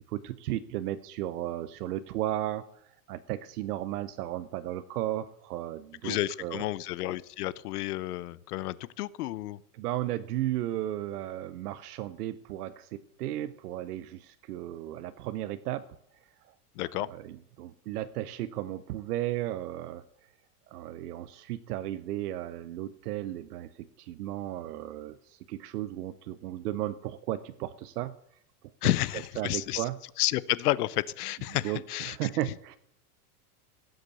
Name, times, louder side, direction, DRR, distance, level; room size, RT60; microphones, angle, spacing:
voice 1, 0.1-6.6 9.7-15.9 16.5-16.6 16.9-20.0 20.7-28.1 28.8-28.9 29.4-30.0 31.5-32.8, right 14 dB, 90° right, 12 dB, 0.9 m, -35 dB
voice 2, 6.0-9.6 16.8-17.1 28.8-29.8 30.2-32.3, left 16 dB, 85° left, 20 dB, 0.8 m, -31 dB
16.5 x 8.1 x 6.9 m, 0.71 s
supercardioid pair, 160°, 45 cm